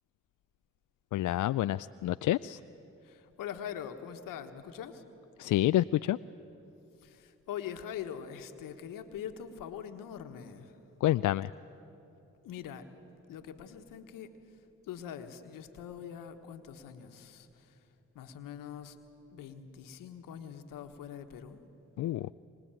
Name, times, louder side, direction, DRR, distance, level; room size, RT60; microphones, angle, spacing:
voice 1, 1.1-2.6 5.4-6.2 11.0-11.5 22.0-22.3, left 14 dB, 70° left, 14 dB, 0.5 m, -28 dB
voice 2, 3.0-5.0 7.0-10.8 12.4-12.9 13.3-14.3 14.8-17.8 18.1-19.0 19.3-21.6, left 9 dB, 85° left, 7 dB, 1.4 m, -43 dB
25.0 x 19.5 x 9.0 m, 3.0 s
supercardioid pair, 45°, 32 cm